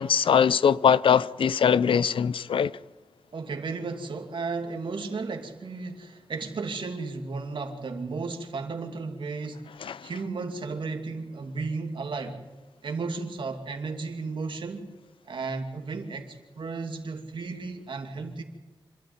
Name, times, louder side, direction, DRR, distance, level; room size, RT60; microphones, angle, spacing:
voice 1, 0.0-2.7 9.8-10.1, left 7 dB, 85° left, 0.6 m, -22 dB
voice 2, 3.3-9.7 10.0-12.4 12.8-14.9 15.3-18.4, right 4 dB, 75° right, 2.6 m, -34 dB
26.5 x 13.0 x 8.8 m
wide cardioid pair, 105°, 9 cm